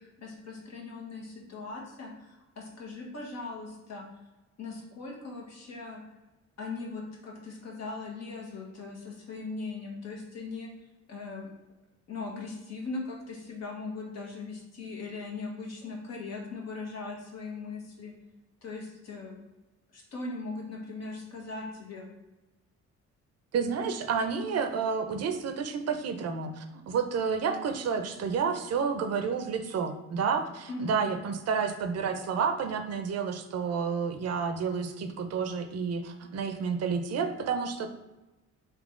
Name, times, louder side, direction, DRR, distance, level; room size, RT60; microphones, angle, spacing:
voice 1, 0.0-4.0 4.6-6.0 6.6-10.7 11.1-11.5 12.1-18.1 18.6-19.4 19.9-22.1 30.7-31.1, left 3 dB, 60° left, -2 dB, 1.4 m, -39 dB
voice 2, 23.5-37.9, right 6 dB, 55° right, 7 dB, 0.6 m, -30 dB
3.7 x 2.9 x 3.7 m, 1.1 s
cardioid pair, 90°, 30 cm